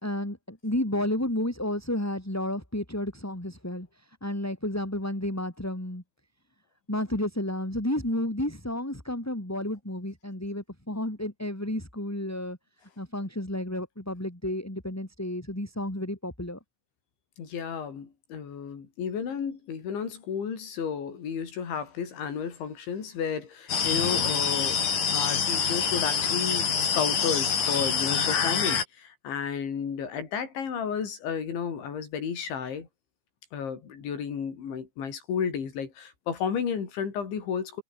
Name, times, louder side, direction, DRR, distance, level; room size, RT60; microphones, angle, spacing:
voice 1, 0.0-3.9 4.2-6.0 6.9-12.6 13.0-16.6 24.0-24.2, left 1 dB, 5° left, 2.8 m, -31 dB
voice 2, 17.4-32.9 33.5-37.8, left 7 dB, 80° left, 6.9 m, -32 dB
sound 1, 23.7-28.8, left 7 dB, 50° left, 5.1 m, -26 dB
omnidirectional pair, 5.2 m